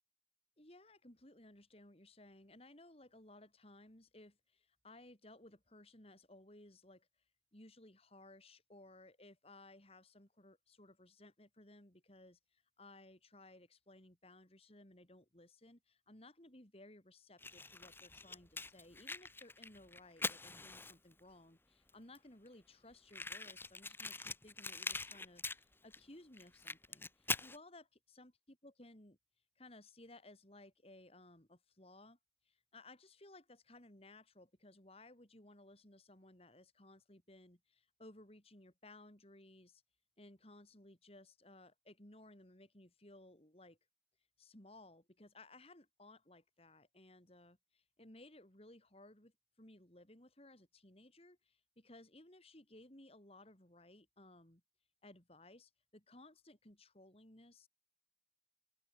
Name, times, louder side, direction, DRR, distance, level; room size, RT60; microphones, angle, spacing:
voice 1, 0.6-29.2 29.6-39.8 40.2-43.8 44.4-54.6 55.0-57.7, left 2 dB, 35° left, 3.7 m, -60 dB
Fire, 17.4-21.2 21.9-22.0 22.1-22.2 22.5-22.6 23.1-26.0 26.3-27.6, left 3 dB, 15° left, 1.4 m, -43 dB
open air
head